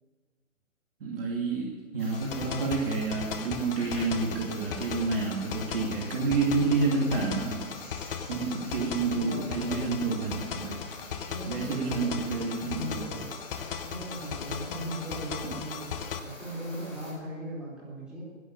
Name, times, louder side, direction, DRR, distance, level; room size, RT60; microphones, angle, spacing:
voice 1, 1.0-7.6 8.3-10.8 11.5-13.0, right 4 dB, 45° right, -2 dB, 2.7 m, -29 dB
sound 1, 2.0-17.1, left 1 dB, 15° left, 5.6 m, -47 dB
sound 2, 2.1-16.2, left 7 dB, 45° left, 1.1 m, -37 dB
voice 2, 9.1-9.9 11.3-12.2 12.5-13.3 13.9-15.9 16.2-18.3, right 1 dB, ahead, -9 dB, 4.3 m, -38 dB
11.0 x 11.0 x 8.5 m, 1.4 s
figure-of-eight pair, 135°, 40 cm